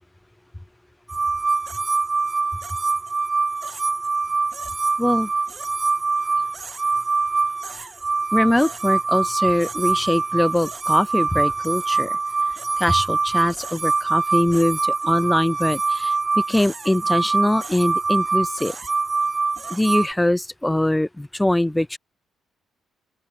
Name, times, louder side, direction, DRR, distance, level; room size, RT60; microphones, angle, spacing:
sound 1, 1.1-20.1, right 4 dB, 30° right, 2.6 m, -24 dB
voice 1, 5.0-5.3 7.7-7.9 8.3-12.2 12.8-18.7 19.7-22.0, left 1 dB, 10° left, 1.2 m, -22 dB
open air
cardioid pair, 90°, 0 cm